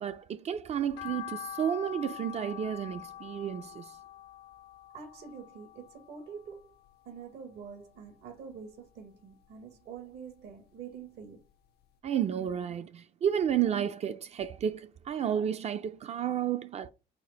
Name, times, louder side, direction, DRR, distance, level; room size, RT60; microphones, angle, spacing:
voice 1, 0.0-4.0 12.0-16.9, right 9 dB, 40° right, 0.4 m, -31 dB
sound 1, 1.0-7.3 7.6-8.8 9.1-10.6 10.9-11.0 11.5-11.6 11.8-11.9, left 12 dB, 70° left, 0.5 m, -45 dB
voice 2, 4.9-6.6 7.0-11.4, right 6 dB, 75° right, 1.2 m, -46 dB
4.2 x 2.4 x 3.9 m
cardioid pair, 110°, 17 cm